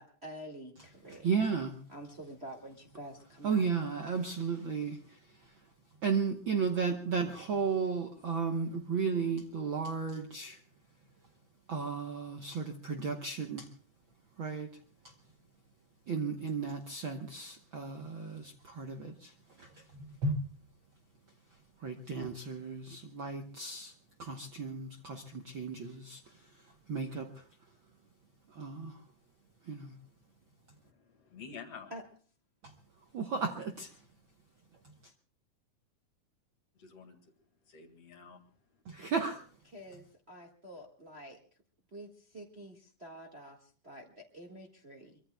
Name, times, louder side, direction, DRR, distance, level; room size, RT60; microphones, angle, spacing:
voice 1, 0.0-1.3 1.9-3.7 31.9-32.0 39.7-41.4 41.9-45.2, right 1 dB, 25° right, 1 dB, 1.4 m, -48 dB
voice 2, 1.2-1.8 3.4-5.0 6.0-10.6 11.7-13.7 14.4-14.7 16.1-19.3 19.6-20.4 21.8-23.9 24.2-26.2 26.9-27.4 28.5-29.0 29.7-29.9 33.1-33.9 38.9-39.4, right 5 dB, 60° right, 5 dB, 1.4 m, -34 dB
voice 3, 30.8-31.9 36.8-37.2 37.7-38.4, left 5 dB, 55° left, 6 dB, 2.9 m, -49 dB
24.0 x 23.5 x 2.3 m, 0.42 s
omnidirectional pair, 3.6 m